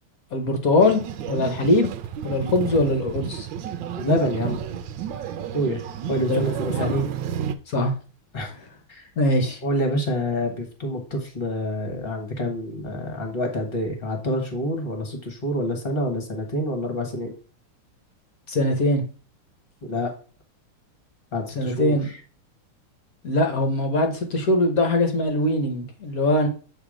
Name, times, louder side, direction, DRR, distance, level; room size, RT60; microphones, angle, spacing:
voice 1, 0.3-1.0 1.3-1.9 2.2-3.5 6.3-6.5 6.8-7.0 7.7-7.9 9.2-9.6 18.5-19.0 21.6-22.1 23.2-26.5, left 1 dB, 50° left, 4 dB, 1.2 m, -21 dB
sound 1, 0.8-7.6, right 8 dB, 70° right, 1.2 m, -31 dB
voice 2, 4.0-4.6 5.5-5.8 6.1-6.9 8.3-8.5 8.9-9.1 9.6-17.3 19.8-20.1 21.3-22.1, equal, 30° left, 4 dB, 1.4 m, -27 dB
7.3 x 3.3 x 5.0 m, 0.37 s
omnidirectional pair, 2.4 m